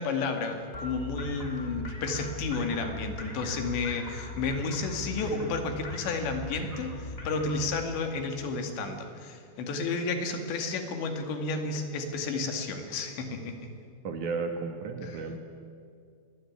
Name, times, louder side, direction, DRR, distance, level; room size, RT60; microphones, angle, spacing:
voice 1, 0.0-13.5 15.0-15.2, left 3 dB, 85° left, 5 dB, 4.6 m, -32 dB
sound 1, 0.7-7.8, left 1 dB, 20° left, 3.4 m, -39 dB
voice 2, 14.0-15.4, right 4 dB, 60° right, 5 dB, 2.4 m, -33 dB
25.0 x 19.5 x 9.5 m, 2.3 s
omnidirectional pair, 5.0 m